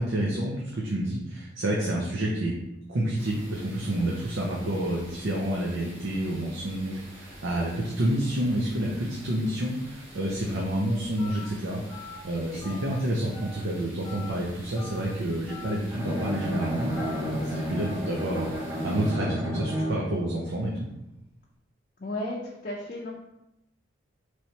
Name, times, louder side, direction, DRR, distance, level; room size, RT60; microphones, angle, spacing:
voice 1, 0.0-2.5 2.9-20.9, right 1 dB, 80° right, -3 dB, 0.7 m, -29 dB
sound 1, 3.2-19.1, right 1 dB, 30° right, 1.5 m, -48 dB
Telephone, 11.2-11.4 11.9-12.2 12.6-12.9 13.3-13.6 14.0-14.3 14.8-15.0 15.5-15.7 16.2-16.5 16.9-17.2, left 5 dB, 15° left, 0.9 m, -43 dB
Bowed string instrument, 15.9-20.3, equal, 10° right, 0.6 m, -31 dB
voice 2, 22.0-23.1, left 1 dB, 40° left, -3 dB, 0.5 m, -35 dB
4.4 x 3.2 x 2.8 m, 0.87 s
head